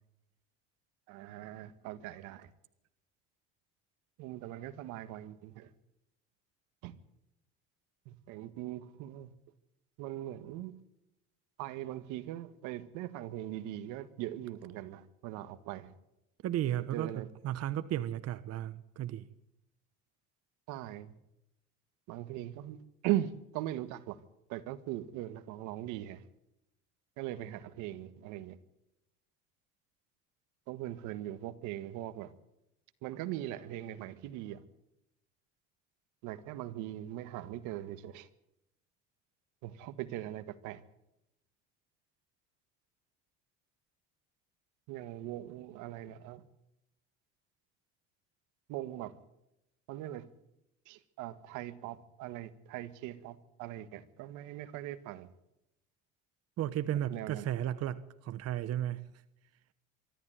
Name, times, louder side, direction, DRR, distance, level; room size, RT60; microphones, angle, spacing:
voice 1, 1.1-2.5 4.2-5.7 6.8-6.9 8.0-9.3 10.0-10.7 11.6-15.9 16.9-17.3 20.7-21.1 22.1-24.2 24.5-26.2 27.2-28.6 30.7-32.3 33.0-34.6 36.2-38.3 39.6-40.8 44.9-46.4 48.7-49.2 49.9-50.3 50.9-55.3 57.1-57.4, right 13 dB, 80° right, 1.7 m, -40 dB
voice 2, 16.4-19.3 56.6-59.1, right 12 dB, 55° right, 1.1 m, -34 dB
24.0 x 14.0 x 9.2 m
supercardioid pair, 100°, 30 cm